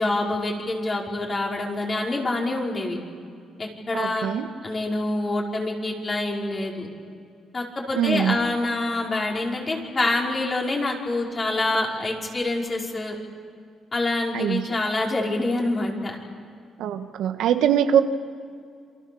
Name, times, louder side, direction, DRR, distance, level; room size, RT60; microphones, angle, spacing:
voice 1, 0.0-3.0 3.6-4.3 4.6-6.9 7.5-13.2 13.9-16.2, left 2 dB, 30° left, -1 dB, 5.3 m, -26 dB
voice 2, 3.9-4.5 7.9-8.4 14.3-14.7 16.8-18.0, right 9 dB, 85° right, 8 dB, 1.4 m, -22 dB
27.5 x 25.5 x 7.1 m, 2.3 s
cardioid pair, 90°, 0 cm